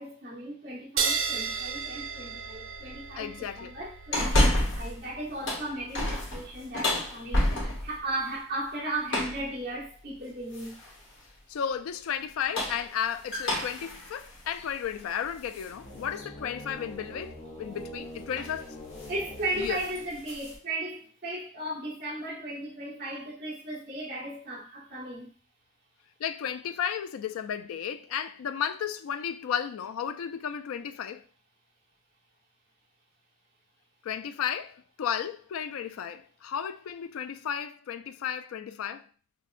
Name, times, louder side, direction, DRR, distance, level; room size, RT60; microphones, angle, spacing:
voice 1, 0.0-10.8 19.1-25.3, right 1 dB, 45° right, 1.6 m, -36 dB
sound 1, 1.0-7.9, right 6 dB, 70° right, 0.5 m, -36 dB
voice 2, 3.2-3.7 11.5-18.8 19.6-19.8 26.2-31.2 34.0-39.0, left 8 dB, 85° left, 0.3 m, -33 dB
sound 2, 4.1-5.0 5.3-8.0 9.1-9.5 10.5-11.0 12.3-15.7 16.2-16.3 17.8-18.0 18.3-18.6 18.9-19.2 19.5-20.6, left 1 dB, 65° left, 1.2 m, -30 dB
sound 3, 15.7-20.4, left 1 dB, 40° left, 0.7 m, -44 dB
5.2 x 2.2 x 2.5 m
head